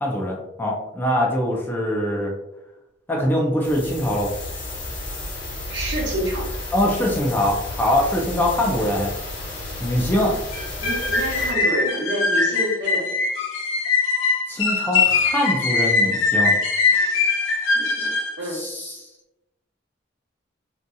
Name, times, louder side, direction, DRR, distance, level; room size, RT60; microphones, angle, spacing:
voice 1, 0.0-2.3 3.1-4.3 6.7-9.1 9.8-10.4 14.5-16.6 18.4-19.0, left 1 dB, 10° left, -2 dB, 0.4 m, -23 dB
sound 1, 3.6-11.5, left 2 dB, 65° left, 0.9 m, -32 dB
voice 2, 5.7-6.5 10.8-13.1 16.9-17.4 17.7-18.1 18.4-18.6, right 1 dB, 60° right, -3 dB, 0.8 m, -28 dB
sound 2, 10.5-18.4, left 4 dB, 85° left, 0.5 m, -21 dB
2.6 x 2.6 x 2.2 m, 0.90 s
head